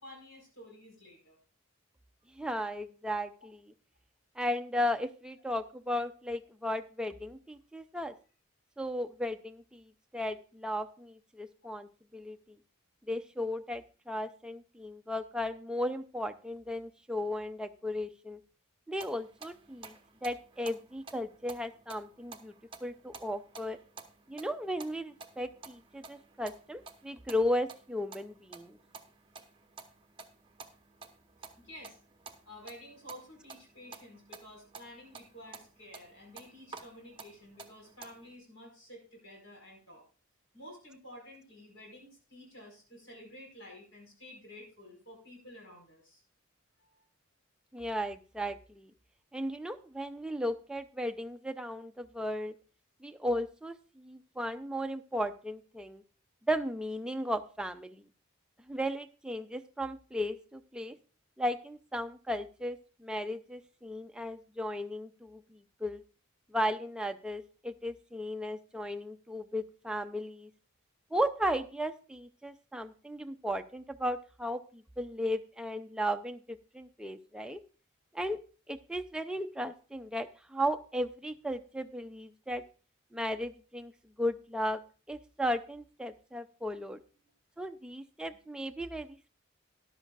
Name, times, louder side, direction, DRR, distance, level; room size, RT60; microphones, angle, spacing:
voice 1, 0.0-1.4 3.4-3.5 31.6-32.0 32.4-40.0 40.5-46.2 46.8-47.0 87.2-87.3, left 1 dB, 65° left, 0 dB, 5.0 m, -51 dB
voice 2, 2.3-3.6 4.4-8.1 8.8-12.6 13.1-18.4 18.9-20.0 20.2-22.5 22.8-23.8 24.3-28.8 47.7-48.9 49.3-52.5 53.0-56.0 56.5-58.0 58.7-61.0 61.4-66.0 66.5-70.5 71.1-77.6 78.1-78.4 78.7-82.6 83.1-83.9 84.2-84.8 85.1-87.0 87.6-89.3, equal, 5° right, 7 dB, 0.4 m, -35 dB
sound 1, 19.0-38.3, right 4 dB, 25° right, 0.9 m, -52 dB
13.5 x 11.0 x 2.4 m, 0.37 s
head